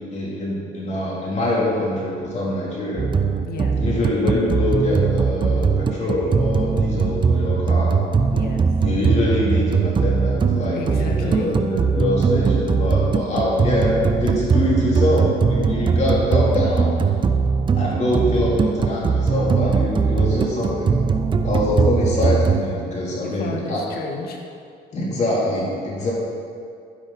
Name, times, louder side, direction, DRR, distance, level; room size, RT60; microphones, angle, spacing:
voice 1, 0.1-3.1 3.8-8.0 8.8-16.9 17.8-21.0 21.4-23.8 24.9-26.1, left 1 dB, 40° left, -5 dB, 3.2 m, -24 dB
sound 1, 3.0-22.6, right 5 dB, 30° right, 0.6 m, -20 dB
voice 2, 3.4-3.8 8.3-8.7 10.7-11.6 23.2-24.5, left 3 dB, 65° left, 2 dB, 1.7 m, -32 dB
12.0 x 10.0 x 4.2 m, 2.3 s
cardioid pair, 110°, 17 cm